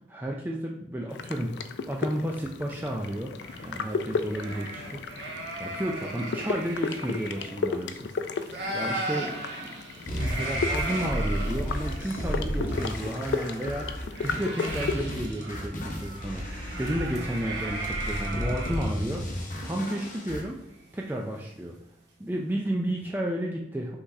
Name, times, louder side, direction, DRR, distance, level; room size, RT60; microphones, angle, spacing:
voice 1, 0.1-3.3 3.6-9.8 10.1-20.6 20.9-21.8 22.2-24.0, right 1 dB, 10° right, -1 dB, 0.3 m, -32 dB
sound 1, 1.1-15.0, left 5 dB, 80° left, 0.3 m, -35 dB
sound 2, 3.4-8.1 8.4-21.3, right 2 dB, 85° right, 1.0 m, -37 dB
sound 3, 10.1-20.4, equal, 45° left, 0.8 m, -33 dB
5.7 x 3.2 x 2.7 m, 0.87 s
head